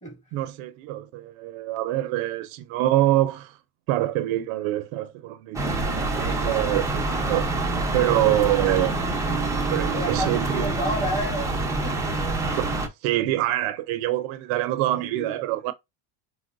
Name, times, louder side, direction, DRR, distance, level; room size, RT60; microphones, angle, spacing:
voice 1, 0.3-3.6 3.9-7.5 7.9-8.9 9.7-10.7 12.6-12.7 13.0-15.7, right 15 dB, 70° right, 0.6 m, -25 dB
sound 1, 5.5-12.9, right 2 dB, 5° right, 0.5 m, -26 dB
voice 2, 9.4-12.6 14.9-15.4, equal, 15° left, 1.8 m, -33 dB
4.5 x 2.1 x 2.4 m
cardioid pair, 135°, 49 cm